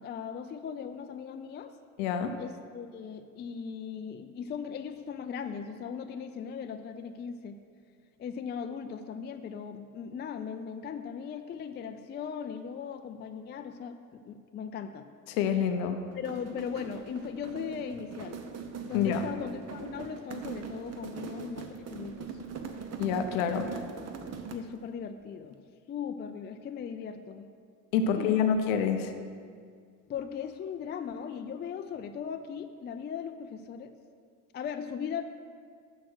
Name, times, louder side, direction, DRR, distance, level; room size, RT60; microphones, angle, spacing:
voice 1, 0.0-1.7 2.4-7.6 8.2-15.1 16.1-18.4 18.8-22.4 24.5-25.6 25.9-27.5 28.0-28.6 30.1-33.9 34.5-35.2, left 7 dB, 25° left, 7 dB, 0.4 m, -38 dB
voice 2, 2.0-2.4 15.3-16.0 18.9-19.2 23.0-23.7 27.9-29.1, left 7 dB, 90° left, 7 dB, 0.7 m, -27 dB
sound 1, 16.1-24.8, right 5 dB, 40° right, 0.8 m, -41 dB
6.3 x 5.9 x 6.1 m, 2.1 s
supercardioid pair, 75°, 40 cm